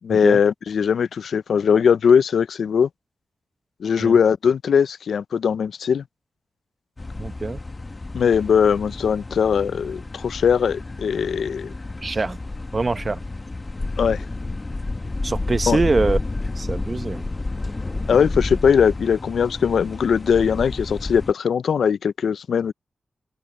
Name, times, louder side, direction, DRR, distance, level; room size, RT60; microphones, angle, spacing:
voice 1, 0.0-2.9 3.8-6.0 8.1-11.7 14.0-14.2 15.7-15.8 18.1-22.7, left 7 dB, 85° left, 0.5 m, -20 dB
sound 1, 7.0-21.3, left 2 dB, 40° left, 1.3 m, -30 dB
voice 2, 7.2-7.6 12.0-12.4 12.7-13.2 15.2-16.2 16.6-17.2, right 3 dB, 45° right, 0.9 m, -24 dB
open air
cardioid pair, 40°, 0 cm